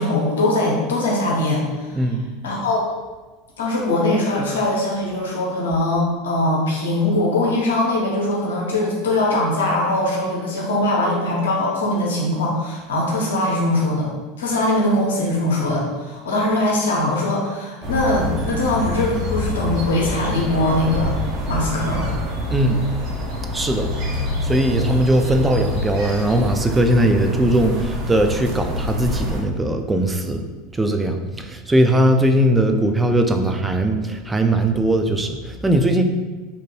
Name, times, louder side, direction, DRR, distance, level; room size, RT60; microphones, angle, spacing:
voice 1, 0.0-2.0 2.4-2.8 3.6-14.1 14.4-21.2 21.5-22.0, left 1 dB, 85° left, -3 dB, 0.7 m, -21 dB
sound 1, 17.8-29.4, left 2 dB, 55° right, 0.7 m, -26 dB
voice 2, 22.5-22.8 23.5-23.9 24.4-30.4 30.7-36.0, right 1 dB, 15° right, 6 dB, 0.3 m, -19 dB
2.7 x 2.1 x 3.1 m, 1.3 s
hypercardioid pair, 90°, 0 cm